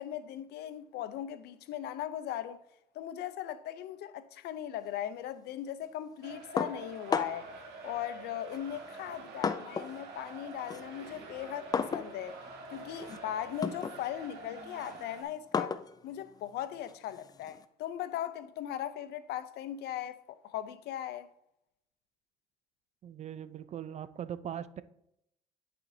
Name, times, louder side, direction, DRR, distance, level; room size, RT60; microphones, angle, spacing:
voice 1, 0.0-2.6 3.0-7.5 7.8-12.4 12.7-21.3, left 11 dB, 75° left, 0.5 m, -38 dB
sound 1, 6.2-15.2, right 3 dB, 80° right, 1.4 m, -47 dB
sound 2, 6.6-7.6 8.5-10.0 10.3-17.6, left 5 dB, 20° left, 0.4 m, -36 dB
voice 2, 23.0-24.8, right 9 dB, 45° right, 0.4 m, -40 dB
11.0 x 4.3 x 2.7 m
cardioid pair, 110°, 17 cm